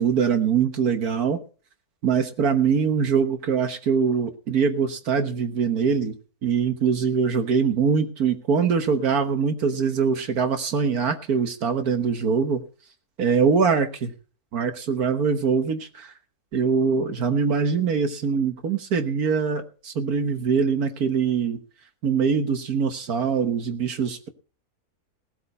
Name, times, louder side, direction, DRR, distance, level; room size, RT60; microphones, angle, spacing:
voice 1, 0.0-1.4 2.0-6.1 6.4-12.6 13.2-14.1 14.5-16.1 16.5-21.6 22.0-24.3, right 6 dB, 70° right, 8 dB, 1.7 m, -23 dB
18.0 x 8.3 x 5.4 m, 0.39 s
omnidirectional pair, 1.7 m